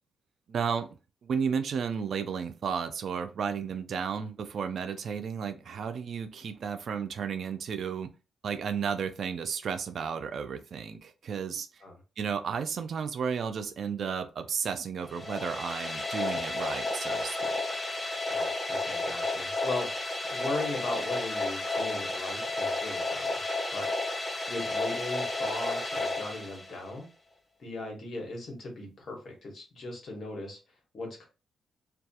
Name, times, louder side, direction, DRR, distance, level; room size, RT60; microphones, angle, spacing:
voice 1, 0.5-0.9 1.2-8.1 8.4-11.7 12.2-17.6, right 6 dB, 65° right, 0.3 m, -33 dB
sound 1, 15.1-27.0, left 2 dB, 20° left, 0.6 m, -32 dB
voice 2, 18.3-19.9 20.3-23.3 23.7-23.9 24.2-27.1 27.6-30.6 30.9-31.2, left 2 dB, 55° left, 1.1 m, -38 dB
2.3 x 2.2 x 2.8 m
cardioid pair, 95°, 0 cm